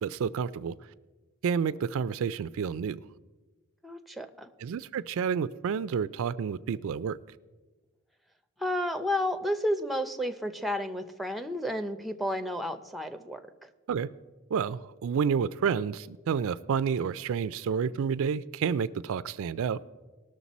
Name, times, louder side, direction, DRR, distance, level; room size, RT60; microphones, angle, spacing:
voice 1, 0.0-0.8 1.4-3.0 4.6-7.2 13.9-14.1 14.5-19.8, right 6 dB, 65° right, 16 dB, 0.3 m, -29 dB
voice 2, 3.8-4.5 8.6-13.4, left 1 dB, ahead, 7 dB, 0.5 m, -31 dB
19.5 x 6.5 x 4.1 m, 1.2 s
head